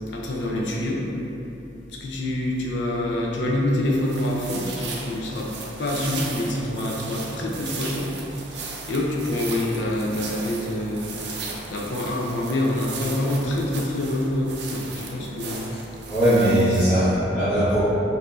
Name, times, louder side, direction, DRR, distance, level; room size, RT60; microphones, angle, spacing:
voice 1, 0.1-1.0 2.0-5.5 5.8-8.1 8.5-11.1 11.7-15.7 16.7-16.8, left 1 dB, 80° left, -2 dB, 0.6 m, -26 dB
sound 1, 3.8-16.8, right 4 dB, 65° right, 0.4 m, -36 dB
voice 2, 16.1-17.8, equal, 5° left, -18 dB, 1.0 m, -19 dB
4.6 x 2.7 x 2.5 m, 3.0 s
head